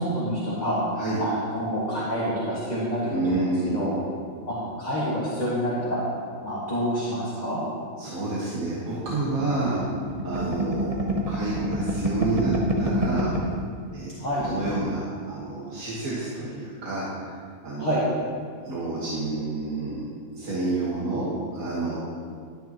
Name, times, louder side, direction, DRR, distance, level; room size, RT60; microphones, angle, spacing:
voice 1, 0.0-0.8 1.2-3.0 3.3-3.9 4.5-6.0 6.4-7.6 14.2-14.5 17.8-18.0, equal, 30° left, -10 dB, 2.0 m, -27 dB
voice 2, 3.1-3.9 8.0-9.8 10.2-13.3 13.9-14.1 14.5-17.4 17.6-17.9 18.6-20.0 20.3-21.3 21.5-22.0, right 2 dB, 80° right, -8 dB, 2.0 m, -29 dB
sound 1, 9.1-13.6 14.0-14.1 14.3-14.9, right 1 dB, 30° right, 0.9 m, -28 dB
12.5 x 10.0 x 3.0 m, 2.1 s
omnidirectional pair, 1.5 m